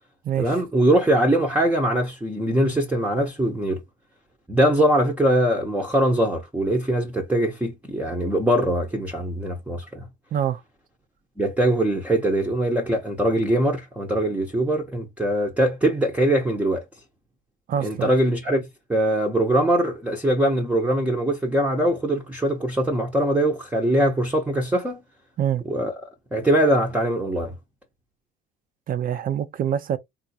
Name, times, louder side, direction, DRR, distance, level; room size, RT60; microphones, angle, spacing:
voice 1, 0.4-3.8 4.5-10.1 11.4-16.8 17.8-18.6 18.9-25.0 25.7-25.9 26.3-27.5, right 1 dB, 5° right, 0.8 m, -22 dB
voice 2, 10.3-10.6 17.7-18.1 25.4-25.6 28.9-30.0, right 9 dB, 45° right, 0.5 m, -25 dB
3.7 x 2.4 x 2.7 m
supercardioid pair, 90°, 20 cm